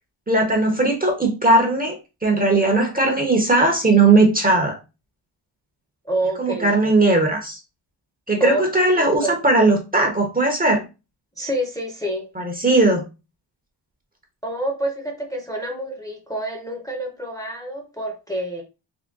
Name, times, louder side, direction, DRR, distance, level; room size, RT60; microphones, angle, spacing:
voice 1, 0.3-2.0 2.2-4.8 6.4-7.6 8.3-10.8 12.4-13.0, right 2 dB, 20° right, 2 dB, 0.9 m, -18 dB
voice 2, 6.0-6.9 8.4-8.6 9.0-9.3 11.4-12.3 14.4-18.6, right 1 dB, 10° left, 0 dB, 0.9 m, -27 dB
3.6 x 2.1 x 3.9 m, 0.29 s
wide cardioid pair, 105°, 44 cm